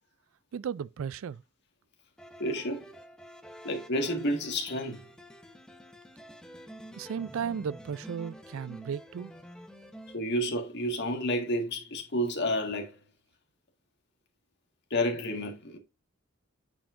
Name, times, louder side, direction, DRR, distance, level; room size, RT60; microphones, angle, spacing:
voice 1, 0.5-1.4 6.9-9.3, right 7 dB, 70° right, 0.3 m, -35 dB
sound 1, 2.2-10.2, equal, 5° left, 0.7 m, -48 dB
voice 2, 2.4-2.9 3.6-5.1 10.1-13.0 14.9-15.8, equal, 55° left, 1.7 m, -30 dB
8.9 x 4.9 x 2.5 m
head